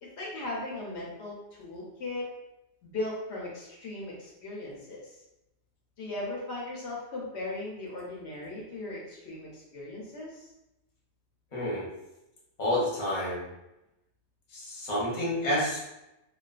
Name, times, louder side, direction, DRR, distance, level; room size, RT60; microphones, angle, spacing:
voice 1, 0.0-2.2 2.8-5.2 6.0-10.5, left 2 dB, 75° left, -4 dB, 0.9 m, -38 dB
voice 2, 11.5-11.9 12.6-13.4 14.5-15.8, left 1 dB, 40° left, -6 dB, 0.8 m, -29 dB
2.3 x 2.3 x 2.3 m, 0.93 s
omnidirectional pair, 1.1 m